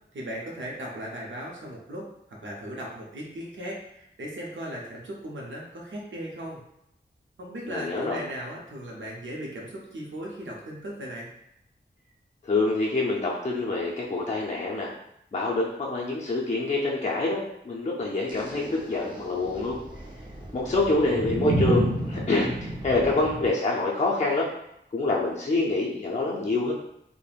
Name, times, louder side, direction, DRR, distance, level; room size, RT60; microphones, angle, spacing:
voice 1, 0.1-6.6 7.4-11.3, equal, 75° right, -3 dB, 0.6 m, -37 dB
voice 2, 7.7-8.2 12.4-14.9 15.3-19.8 20.5-24.5 24.9-26.7, left 2 dB, 35° left, -4 dB, 0.4 m, -26 dB
sound 1, 18.3-23.5, right 1 dB, 25° right, 0.6 m, -30 dB
3.2 x 2.1 x 2.3 m, 0.78 s
wide cardioid pair, 55°, 19 cm